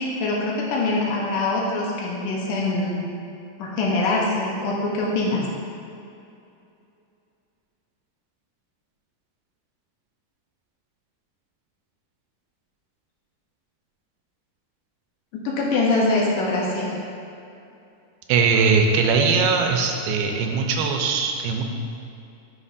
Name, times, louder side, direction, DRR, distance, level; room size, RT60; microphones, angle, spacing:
voice 1, 0.0-3.0 3.6-5.4 15.4-17.0, left 2 dB, 75° left, -3 dB, 2.2 m, -23 dB
voice 2, 18.3-21.6, right 5 dB, 90° right, 3 dB, 2.5 m, -20 dB
9.6 x 5.8 x 2.5 m, 2.7 s
omnidirectional pair, 4.2 m